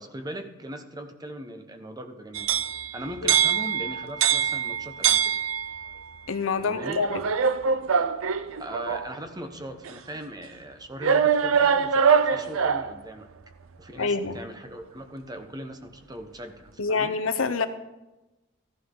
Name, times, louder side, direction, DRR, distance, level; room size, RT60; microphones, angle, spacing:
voice 1, 0.0-2.6 2.9-5.4 6.6-7.1 8.6-13.3 13.8-17.1, right 1 dB, 20° right, 7 dB, 1.0 m, -39 dB
sound 1, 2.3-6.0 6.8-9.1 9.9-10.0 11.0-13.0, right 7 dB, 85° right, 0.5 m, -24 dB
voice 2, 6.3-7.2 14.0-14.4 16.8-17.7, left 4 dB, 85° left, 8 dB, 0.9 m, -26 dB
14.5 x 11.0 x 3.9 m, 1.0 s
head